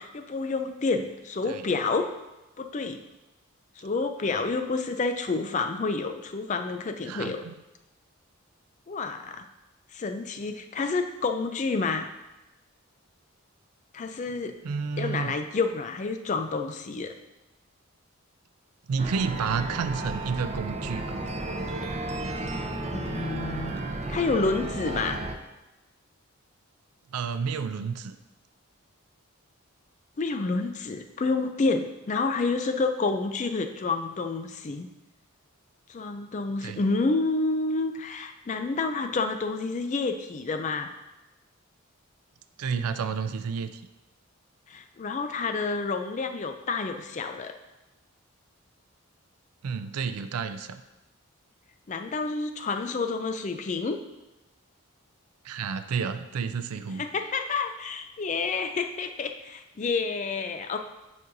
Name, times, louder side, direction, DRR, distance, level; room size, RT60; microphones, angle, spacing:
voice 1, 0.0-2.1 2.6-3.0 3.8-7.4 8.9-9.5 9.9-12.1 13.9-14.5 15.0-17.1 22.9-25.2 30.2-34.9 35.9-40.9 44.7-47.5 51.9-54.0 57.0-60.8, left 3 dB, 35° left, 7 dB, 0.4 m, -29 dB
voice 2, 7.1-7.5 14.6-15.3 18.9-21.2 27.1-28.2 36.6-36.8 42.6-43.8 49.6-50.8 55.4-57.1, right 5 dB, 90° right, 10 dB, 0.4 m, -30 dB
sound 1, 19.0-25.3, right 2 dB, 30° right, 0.5 m, -33 dB
9.1 x 5.4 x 2.6 m, 1.0 s
head